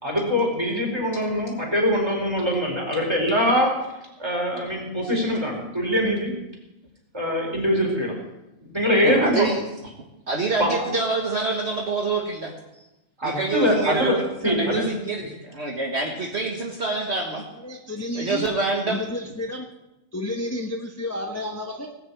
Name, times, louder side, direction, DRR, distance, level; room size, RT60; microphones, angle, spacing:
voice 1, 0.0-3.7 4.2-6.3 7.1-8.2 8.6-9.5 10.6-10.7 13.2-14.2 14.4-14.8, equal, 20° right, -1 dB, 4.6 m, -23 dB
voice 2, 9.0-9.6 10.3-12.5 13.2-17.5 18.2-19.0, right 3 dB, 50° right, 0 dB, 1.8 m, -26 dB
voice 3, 17.6-18.5 18.9-19.7 20.1-22.0, left 1 dB, 10° left, 2 dB, 1.0 m, -31 dB
18.5 x 6.8 x 8.6 m, 0.96 s
omnidirectional pair, 1.5 m